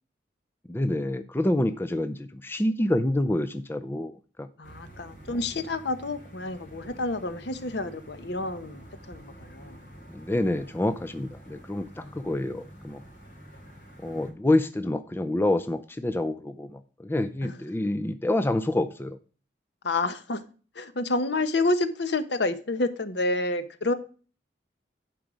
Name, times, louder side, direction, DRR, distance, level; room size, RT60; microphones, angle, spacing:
voice 1, 0.7-4.5 10.1-13.0 14.0-19.2, left 1 dB, 10° left, 0.4 m, -27 dB
voice 2, 4.6-9.8 12.0-12.2 17.4-17.5 19.8-20.4 20.7-23.9, left 2 dB, 65° left, 0.9 m, -29 dB
sound 1, 4.6-14.3, equal, 50° left, 2.7 m, -48 dB
11.0 x 4.7 x 5.0 m
head